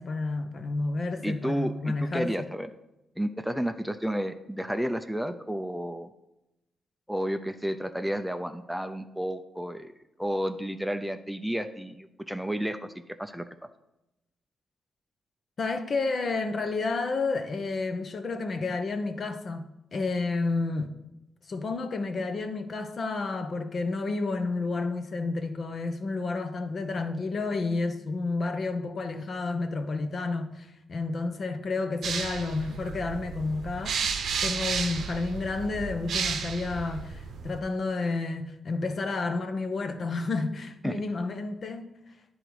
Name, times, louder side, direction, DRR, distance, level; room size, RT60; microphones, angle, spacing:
voice 1, 0.0-2.3 15.6-20.9 21.5-34.0 34.4-41.9, left 3 dB, 50° left, 0.8 m, -30 dB
voice 2, 1.2-2.7 3.2-6.1 7.1-9.9 10.2-12.9 13.2-13.5 40.8-41.0, equal, 5° right, 0.5 m, -31 dB
sound 1, 32.0-37.6, right 6 dB, 75° right, 0.7 m, -33 dB
9.7 x 3.9 x 4.7 m
cardioid pair, 60°, 0 cm